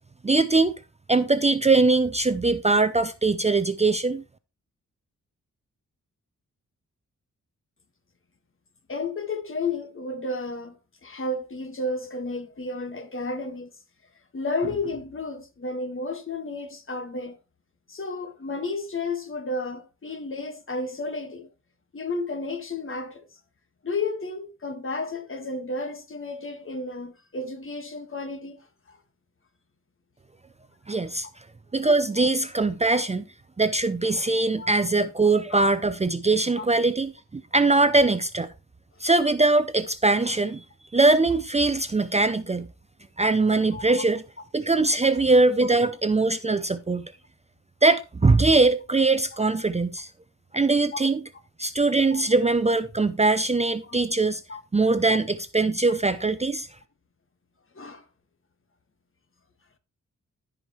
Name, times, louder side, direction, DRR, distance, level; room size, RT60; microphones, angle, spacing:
voice 1, 0.2-0.7 1.1-4.2 30.9-31.3 31.7-33.2 33.6-38.5 39.0-40.6 40.9-42.7 43.2-44.2 44.5-47.1 47.8-50.1 50.5-51.2 51.6-54.4 54.7-56.7, right 3 dB, 20° right, 0.5 m, -21 dB
voice 2, 8.9-13.7 14.3-17.4 17.9-21.5 21.9-23.3 23.8-29.0 34.3-34.9 35.5-35.7 36.6-36.7 43.7-44.0 50.9-51.0 52.1-52.2 53.8-54.0 54.5-55.2 57.7-58.0, left 3 dB, 40° left, 1.6 m, -32 dB
14.5 x 5.0 x 3.1 m
cardioid pair, 75°, 31 cm